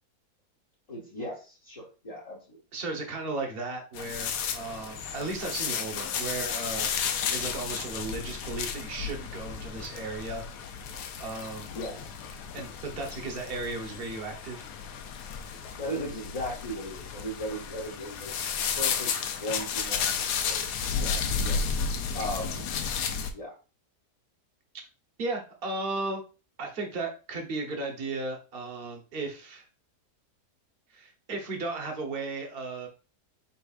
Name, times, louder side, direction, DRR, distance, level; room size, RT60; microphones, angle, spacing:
voice 1, 0.9-2.6 11.7-12.1 15.8-18.3 18.7-21.7 22.1-22.7 23.3-23.5, equal, 30° left, -5 dB, 0.8 m, -37 dB
voice 2, 2.7-6.9 7.3-10.5 11.2-11.7 12.5-14.7 25.2-26.2 26.6-29.7 30.9-32.9, right 3 dB, 40° right, 2 dB, 1.0 m, -35 dB
sound 1, 3.9-23.3, left 6 dB, 85° left, 1.2 m, -33 dB
4.6 x 4.2 x 2.4 m, 0.34 s
omnidirectional pair, 1.8 m